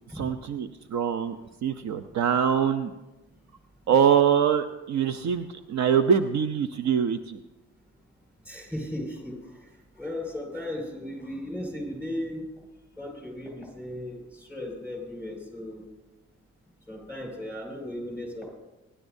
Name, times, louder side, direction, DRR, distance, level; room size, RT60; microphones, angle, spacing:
voice 1, 0.1-1.4 1.6-2.9 3.9-7.4, right 7 dB, 65° right, 9 dB, 0.7 m, -24 dB
voice 2, 8.5-9.3 10.0-12.4 13.0-15.8 16.9-18.5, left 1 dB, 5° right, 0 dB, 6.0 m, -36 dB
24.0 x 11.0 x 2.7 m, 1.0 s
cardioid pair, 90°, 30 cm